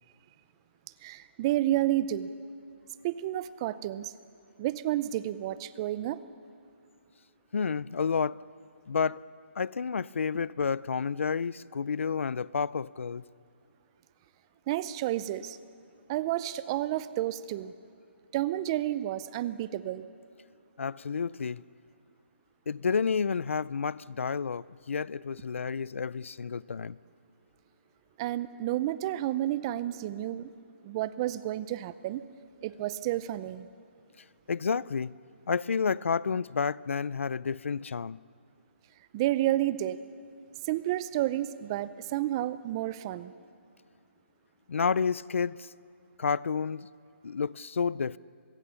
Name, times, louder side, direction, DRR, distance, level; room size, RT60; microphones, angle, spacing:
voice 1, 1.0-2.3 3.0-4.1 4.6-6.2 14.7-15.6 16.1-17.7 18.3-20.1 28.2-30.5 30.8-32.2 32.6-33.7 39.1-40.0 40.6-43.3, right 14 dB, 25° right, 0.5 m, -30 dB
voice 2, 7.5-8.4 8.9-9.2 9.6-13.2 20.8-21.6 22.7-27.0 34.5-35.1 35.5-38.2 44.7-45.7 46.2-46.9 47.2-48.2, left 5 dB, 80° left, 0.5 m, -30 dB
24.5 x 21.5 x 7.0 m
hypercardioid pair, 160°, 7 cm